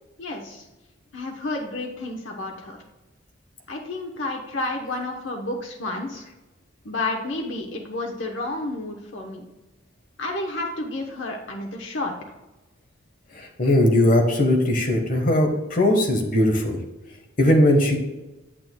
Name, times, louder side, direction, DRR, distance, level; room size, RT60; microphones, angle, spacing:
voice 1, 0.2-0.7 1.1-2.8 3.7-6.2 6.8-9.4 10.2-12.1, left 2 dB, 70° left, 1 dB, 1.0 m, -30 dB
voice 2, 13.3-16.8 17.4-18.0, left 1 dB, 45° left, 3 dB, 1.2 m, -19 dB
8.9 x 8.7 x 2.2 m, 1.0 s
head